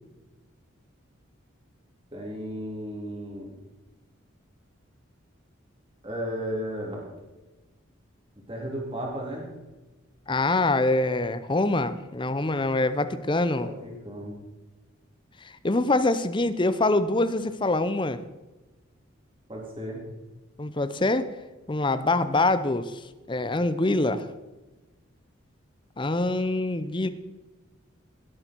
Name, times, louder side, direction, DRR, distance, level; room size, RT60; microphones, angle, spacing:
voice 1, 2.1-3.5 6.0-7.1 8.5-9.5 13.6-14.4 19.5-20.0, equal, 25° right, -2 dB, 3.4 m, -34 dB
voice 2, 10.3-13.7 15.4-18.2 20.6-21.3 21.7-24.3 26.0-27.1, left 2 dB, 25° left, 12 dB, 0.6 m, -25 dB
18.0 x 8.3 x 4.6 m, 1.1 s
head